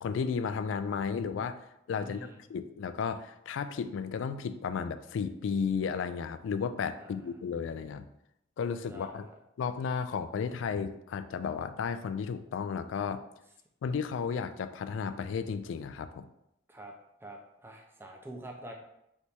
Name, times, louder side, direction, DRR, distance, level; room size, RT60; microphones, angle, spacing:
voice 1, 0.0-1.6 1.9-8.1 8.6-9.3 9.6-13.2 13.8-16.3, left 6 dB, 70° left, 11 dB, 0.3 m, -33 dB
voice 2, 2.0-2.4 7.0-7.2 8.9-9.4 16.7-16.9 17.2-18.8, right 1 dB, 10° right, 1 dB, 0.5 m, -46 dB
3.4 x 3.0 x 4.2 m, 0.81 s
head